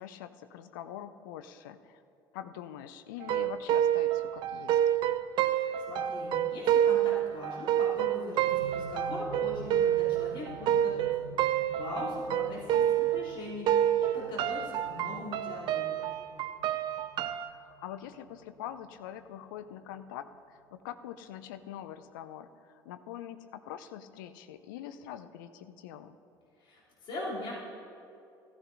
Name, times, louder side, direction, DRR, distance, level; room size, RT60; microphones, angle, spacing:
voice 1, 0.0-2.0 2.3-4.8 12.0-12.1 17.5-26.2, left 10 dB, 65° left, 10 dB, 0.5 m, -44 dB
sound 1, 3.2-13.4 13.7-17.5, right 11 dB, 45° right, 0.4 m, -28 dB
voice 2, 5.4-11.1 11.8-15.9 26.6-27.5, left 1 dB, 45° left, -7 dB, 3.2 m, -41 dB
sound 2, 8.5-20.6 21.6-21.7, right 5 dB, 65° right, 0.8 m, -49 dB
14.5 x 14.0 x 2.7 m, 2.6 s
figure-of-eight pair, 60°, 12 cm